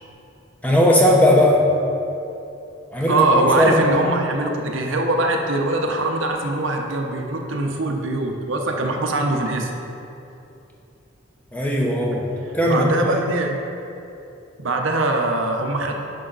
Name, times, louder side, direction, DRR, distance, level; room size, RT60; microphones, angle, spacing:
voice 1, 0.6-1.6 2.9-4.1 11.5-12.2 12.5-12.8, left 1 dB, 5° left, -2 dB, 0.9 m, -17 dB
voice 2, 3.1-9.7 12.7-13.5 14.6-15.9, right 2 dB, 75° right, 2 dB, 0.8 m, -22 dB
10.0 x 5.6 x 4.0 m, 2.8 s
head